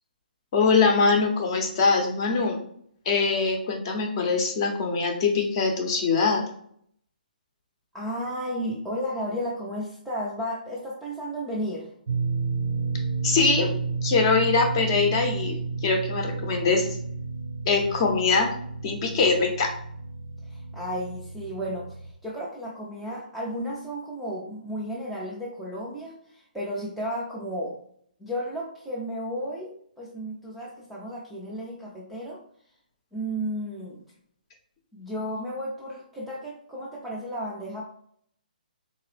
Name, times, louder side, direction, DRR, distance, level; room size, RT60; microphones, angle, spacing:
voice 1, 0.5-2.6 3.1-6.4 13.2-13.7 14.0-16.9 17.7-18.5 18.8-19.7, left 4 dB, 30° left, 3 dB, 0.7 m, -23 dB
voice 2, 7.9-11.9 20.4-27.8 28.2-32.4 33.1-34.0 34.9-37.9, equal, ahead, -7 dB, 0.4 m, -33 dB
sound 1, 12.1-22.1, right 4 dB, 60° right, 0.5 m, -31 dB
3.7 x 2.8 x 3.3 m, 0.65 s
hypercardioid pair, 165°, 5 cm